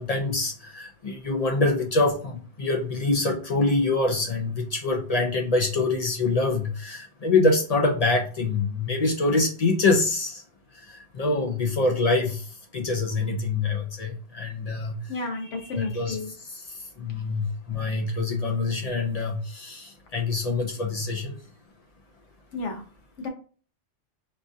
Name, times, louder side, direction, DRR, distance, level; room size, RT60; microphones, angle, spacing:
voice 1, 0.0-10.4 10.9-12.5 12.7-15.0 15.7-16.2 16.4-16.6 17.0-21.4, left 3 dB, 55° left, 2 dB, 0.4 m, -25 dB
voice 2, 15.1-16.3 22.5-22.8 23.2-23.3, left 3 dB, 75° left, 3 dB, 1.1 m, -31 dB
4.4 x 2.4 x 2.6 m, 0.41 s
omnidirectional pair, 1.2 m